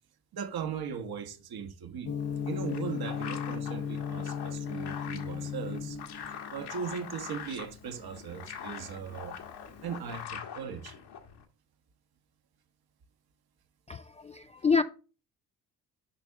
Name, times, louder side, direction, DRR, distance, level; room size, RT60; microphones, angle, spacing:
voice 1, 0.3-2.1 2.5-6.0 6.5-9.4 9.8-11.0, right 7 dB, 50° right, 1.3 m, -38 dB
Gong, 2.1-10.1, left 7 dB, 35° left, 0.8 m, -37 dB
sound 1, 2.2-11.4, left 8 dB, 60° left, 1.6 m, -44 dB
voice 2, 13.9-14.8, left 5 dB, 15° left, 0.3 m, -27 dB
6.9 x 5.4 x 3.4 m
hypercardioid pair, 55°, 46 cm